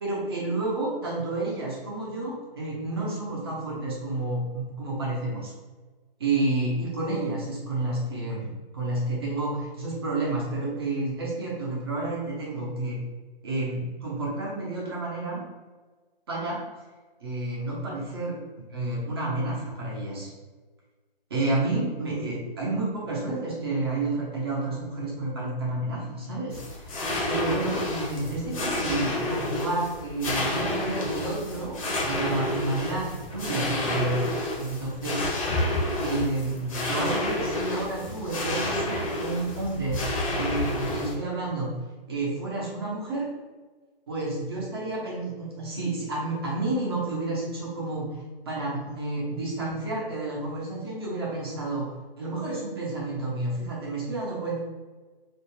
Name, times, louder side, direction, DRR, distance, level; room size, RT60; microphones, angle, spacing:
voice 1, 0.0-5.5 6.2-8.5 8.7-13.0 13.4-15.4 16.3-16.6 17.2-18.4 18.7-20.3 21.3-26.9 27.3-31.8 32.0-34.3 34.6-35.4 36.0-41.7 42.1-43.3 44.1-48.2 48.5-51.9 52.2-54.6, right 2 dB, 25° right, -5 dB, 0.6 m, -30 dB
sound 1, 26.5-41.1, left 1 dB, 35° left, 0.7 m, -30 dB
2.4 x 2.3 x 3.0 m, 1.3 s
hypercardioid pair, 155°, 31 cm